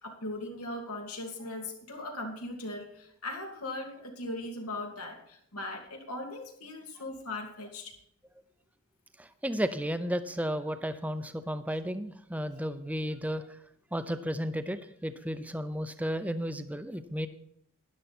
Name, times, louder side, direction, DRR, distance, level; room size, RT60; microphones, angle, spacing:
voice 1, 0.0-7.9, left 2 dB, 85° left, 2 dB, 2.7 m, -39 dB
voice 2, 9.2-13.4 13.9-17.3, equal, 5° right, 11 dB, 0.6 m, -33 dB
12.5 x 10.5 x 4.3 m, 0.70 s
head